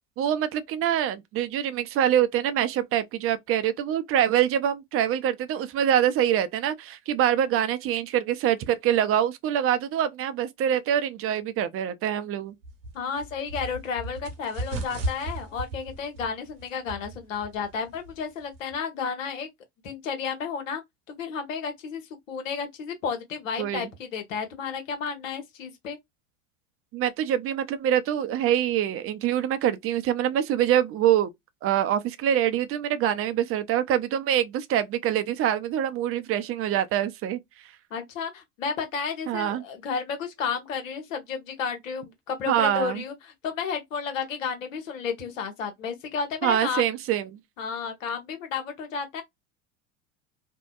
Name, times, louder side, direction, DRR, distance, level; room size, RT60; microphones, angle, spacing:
voice 1, 0.2-12.5 23.6-23.9 26.9-31.3 31.6-37.4 39.3-39.6 42.5-43.0 46.4-47.4, right 10 dB, 35° right, 0.5 m, -25 dB
sound 1, 12.6-18.8, right 1 dB, 75° right, 0.9 m, -37 dB
voice 2, 12.9-19.5 19.8-20.8 21.1-22.0 22.3-26.0 37.9-46.8 47.6-49.2, left 6 dB, 80° left, 1.0 m, -32 dB
2.6 x 2.1 x 2.3 m
hypercardioid pair, 80°, 39 cm